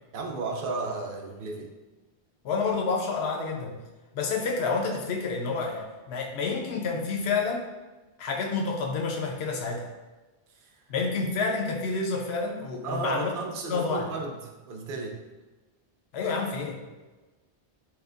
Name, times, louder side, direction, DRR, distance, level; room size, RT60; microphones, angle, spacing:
voice 1, 0.1-1.7 10.5-10.8 12.8-15.2, right 3 dB, 65° right, 2 dB, 0.7 m, -34 dB
voice 2, 2.4-3.8 4.1-7.6 8.2-9.9 10.9-13.3 13.7-14.1 16.1-16.8, left 4 dB, 80° left, 1 dB, 0.8 m, -29 dB
4.3 x 2.2 x 2.5 m, 1.2 s
omnidirectional pair, 1.1 m